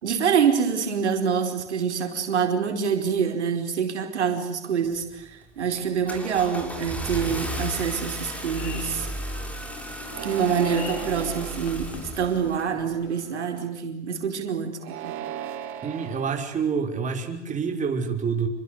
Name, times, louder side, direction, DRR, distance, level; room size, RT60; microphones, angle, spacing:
voice 1, 0.0-9.1 10.2-15.1, right 7 dB, 75° right, 5 dB, 4.9 m, -26 dB
Car / Engine starting, 4.9-5.3 5.7-12.7, equal, 5° left, 6.5 m, -34 dB
sound 1, 8.6-13.7, left 6 dB, 70° left, 5.8 m, -42 dB
sound 2, 10.1-11.5 12.2-12.8 14.7-16.3, right 10 dB, 40° right, 5.1 m, -36 dB
voice 2, 15.8-18.5, right 6 dB, 20° right, 3 dB, 5.8 m, -27 dB
28.5 x 25.5 x 8.1 m, 0.81 s
hypercardioid pair, 100°, 34 cm